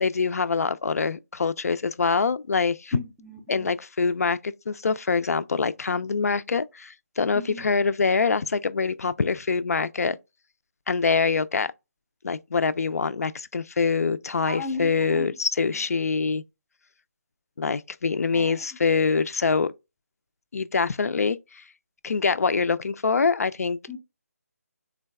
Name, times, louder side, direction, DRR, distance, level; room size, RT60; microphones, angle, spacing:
voice 1, 0.0-3.0 3.5-10.2 10.9-11.7 12.2-16.4 17.6-19.7 20.5-21.6 22.0-23.8, left 5 dB, 65° left, 0.4 m, -24 dB
voice 2, 2.9-3.7 7.3-7.6 14.5-15.3 18.3-18.6 23.9-24.0, left 2 dB, 5° right, 0.4 m, -36 dB
3.9 x 2.2 x 3.4 m
figure-of-eight pair, 165°, 9 cm